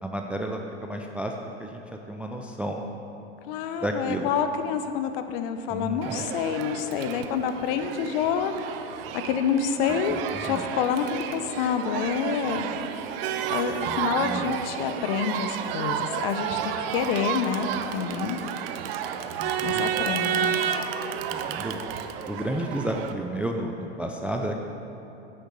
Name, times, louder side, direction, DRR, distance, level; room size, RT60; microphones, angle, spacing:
voice 1, 0.0-1.3 1.6-1.8 2.1-2.8 3.8-4.3 5.7-6.2 9.9-10.6 13.9-14.5 19.4-19.9 21.3-21.9 22.3-24.6, right 1 dB, 5° right, 2 dB, 0.3 m, -32 dB
voice 2, 3.5-8.5 9.1-12.7 13.5-18.4 19.6-20.5, left 7 dB, 55° left, 9 dB, 0.8 m, -28 dB
Crowd, 6.0-23.1, right 8 dB, 60° right, 0.7 m, -31 dB
8.1 x 6.5 x 6.8 m, 2.9 s
hypercardioid pair, 115°, 33 cm